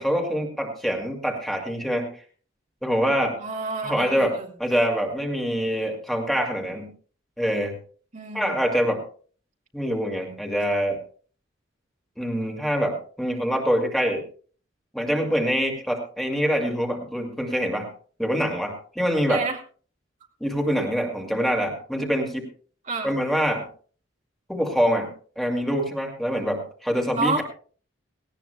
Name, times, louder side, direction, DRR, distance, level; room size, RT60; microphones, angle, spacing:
voice 1, 0.0-2.1 2.8-3.4 3.8-6.9 7.4-7.8 8.3-9.0 9.7-11.0 12.2-14.2 14.9-17.9 18.2-19.5 20.4-22.5 23.0-23.7 24.5-25.1 25.4-27.4, equal, ahead, 1 dB, 2.3 m, -25 dB
voice 2, 3.4-4.5 8.1-8.5 19.3-19.6 22.9-23.1 27.2-27.4, right 3 dB, 40° right, 2 dB, 2.2 m, -29 dB
18.5 x 17.0 x 2.2 m, 0.42 s
head